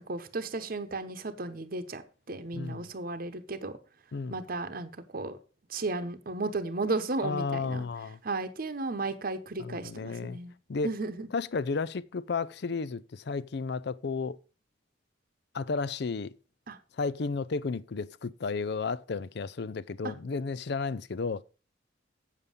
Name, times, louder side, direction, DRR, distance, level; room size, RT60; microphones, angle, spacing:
voice 1, 0.0-2.0 2.3-3.8 4.3-5.4 5.7-7.8 8.2-10.5 10.8-11.3 16.7-16.8 20.0-20.1, right 3 dB, 50° right, 0.9 m, -34 dB
voice 2, 2.5-2.9 4.1-4.4 7.2-8.2 9.6-10.4 10.7-10.9 11.3-14.4 15.5-16.3 17.0-21.4, left 4 dB, 65° left, 0.5 m, -33 dB
8.3 x 7.4 x 5.2 m
head